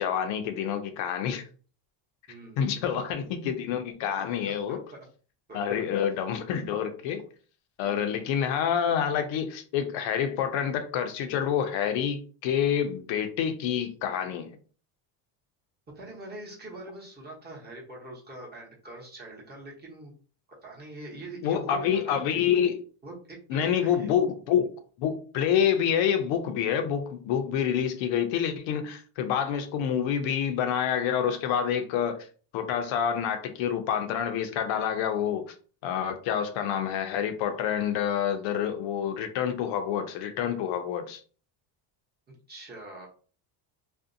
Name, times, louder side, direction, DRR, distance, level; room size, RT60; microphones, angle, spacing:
voice 1, 0.0-1.4 2.6-4.8 5.5-7.2 7.8-14.5 21.4-22.8 23.5-24.7 25.0-32.2 32.5-35.5 35.8-41.2, left 8 dB, 70° left, 0.6 m, -27 dB
voice 2, 2.3-2.8 3.2-3.3 4.4-5.0 5.5-5.6 7.8-8.2 15.9-20.2 20.6-22.3 23.0-24.1 42.5-43.1, right 2 dB, 20° right, 0.9 m, -43 dB
2.5 x 2.1 x 2.5 m
cardioid pair, 125°, 48 cm